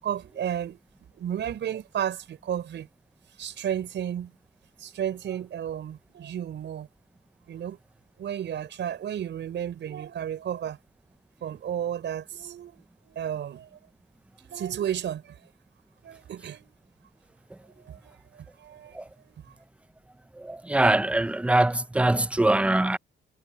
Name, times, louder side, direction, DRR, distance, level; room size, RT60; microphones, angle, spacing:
voice 1, 0.0-2.9 3.4-4.3 4.8-6.9 7.5-7.8 8.2-10.8 11.4-13.7 14.5-15.3 16.0-16.7 17.7-19.0 19.3-19.4, right 9 dB, 65° right, 5.5 m, -33 dB
voice 2, 20.4-23.0, right 1 dB, 5° right, 0.7 m, -23 dB
cardioid pair, 90°, 20 cm